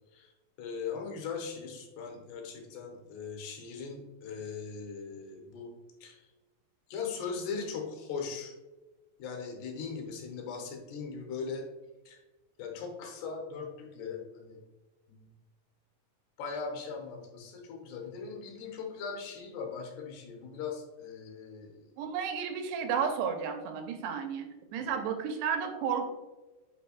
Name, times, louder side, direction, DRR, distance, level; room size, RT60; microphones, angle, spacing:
voice 1, 0.6-5.7 6.0-6.3 6.9-8.5 9.2-11.6 12.1-12.2 12.6-14.6 15.1-15.2 16.4-21.9, left 5 dB, 80° left, 2 dB, 3.2 m, -39 dB
voice 2, 22.0-26.1, right 7 dB, 85° right, 5 dB, 2.8 m, -32 dB
10.0 x 4.9 x 2.3 m, 1.1 s
omnidirectional pair, 4.8 m